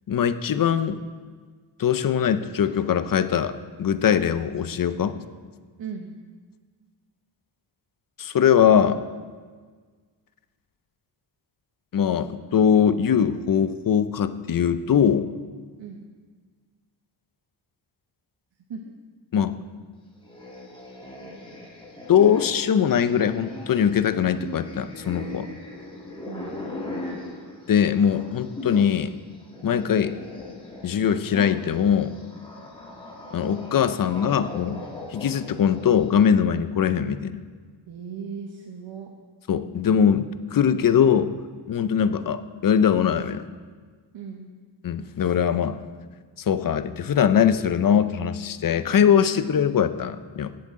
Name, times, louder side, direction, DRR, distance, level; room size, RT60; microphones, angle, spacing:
voice 1, 0.1-1.0 1.8-3.5 3.8-5.2 8.2-9.0 11.9-15.3 19.3-19.5 22.1-25.5 27.7-29.2 29.6-30.1 30.8-32.1 33.3-34.8 35.1-37.3 39.5-41.3 41.7-43.5 44.8-45.8 46.4-50.5, left 8 dB, 50° left, 12 dB, 0.5 m, -21 dB
voice 2, 5.8-6.1 15.8-16.0 18.7-18.9 22.3-22.4 26.3-26.6 37.9-39.1 44.1-44.5, right 6 dB, 75° right, 2 dB, 1.1 m, -37 dB
sound 1, 20.2-28.9 29.2-36.0, left 2 dB, 10° left, 1.7 m, -39 dB
16.5 x 7.8 x 3.7 m, 1.5 s
wide cardioid pair, 160°, 46 cm